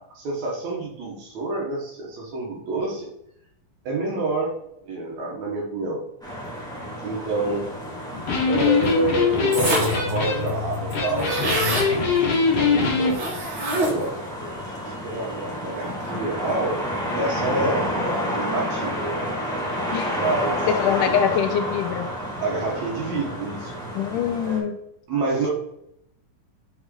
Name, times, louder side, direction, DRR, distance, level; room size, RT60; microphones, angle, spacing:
voice 1, 0.0-3.1 3.8-4.6 4.8-6.0 7.0-7.7 8.5-12.0 12.5-13.3 13.7-14.5 14.9-16.8 17.1-17.8 18.3-19.5 20.2-20.7 21.0-21.1 22.4-23.8 24.4-24.7 25.1-25.5, right 3 dB, 60° right, -1 dB, 2.6 m, -28 dB
sound 1, 6.2-24.6, equal, 5° left, 0.7 m, -30 dB
Electric guitar, 8.1-13.1, left 5 dB, 50° left, 2.4 m, -22 dB
sound 2, 9.5-10.1 10.5-10.6 10.7-11.9 13.1-14.1, right 2 dB, 40° right, 2.1 m, -26 dB
voice 2, 20.7-22.1 24.0-24.8, left 8 dB, 80° left, 7 dB, 1.9 m, -23 dB
6.5 x 4.8 x 3.8 m, 0.76 s
omnidirectional pair, 4.0 m